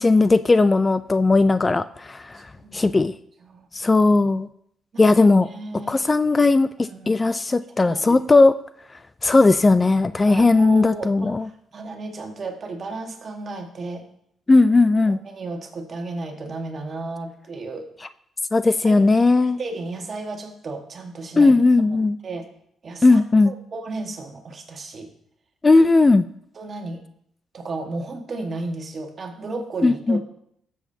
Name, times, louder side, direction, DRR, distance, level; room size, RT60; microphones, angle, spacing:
voice 1, 0.0-2.4 2.7-3.1 3.7-4.5 5.0-5.5 5.9-8.5 9.2-11.5 14.5-15.2 18.5-19.6 21.4-22.2 23.0-23.5 25.6-26.2 29.8-30.2, left 3 dB, 25° left, 13 dB, 0.3 m, -17 dB
voice 2, 2.3-2.9 3.4-3.7 4.9-5.1 5.5-5.9 6.8-7.2 7.8-8.2 10.3-14.0 15.1-17.9 18.8-19.0 19.4-21.5 22.2-22.5 22.8-25.1 26.5-27.0 27.5-30.2, right 3 dB, 45° right, 4 dB, 1.4 m, -34 dB
14.0 x 7.1 x 2.7 m, 0.71 s
cardioid pair, 90°, 0 cm